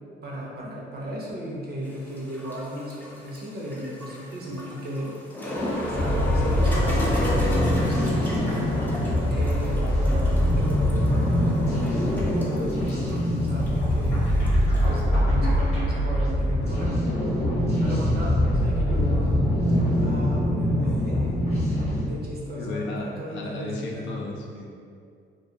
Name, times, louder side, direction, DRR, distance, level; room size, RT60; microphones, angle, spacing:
voice 1, 0.2-5.1 5.8-8.6 9.3-11.6 12.1-14.3 14.8-17.0 17.8-19.5 20.0-21.6 22.1-24.2, equal, 50° right, -3 dB, 0.6 m, -35 dB
sound 1, 1.9-14.9, left 1 dB, 10° left, 0.4 m, -33 dB
sound 2, 5.6-22.0, equal, 30° left, 0.9 m, -23 dB
voice 2, 22.5-24.8, left 2 dB, 70° left, -1 dB, 0.5 m, -34 dB
2.2 x 2.2 x 2.7 m, 2.3 s
cardioid pair, 90°, 20 cm